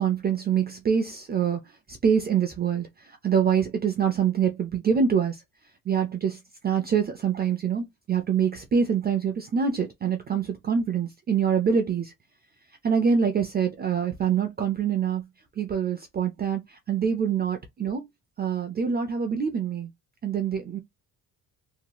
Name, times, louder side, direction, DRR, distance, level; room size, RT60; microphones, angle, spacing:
voice 1, 0.0-1.6 1.9-5.4 5.9-12.1 12.8-15.2 15.6-18.0 18.4-19.9 20.2-20.8, right 7 dB, 25° right, 0.4 m, -25 dB
3.0 x 2.7 x 2.2 m
cardioid pair, 150°, 37 cm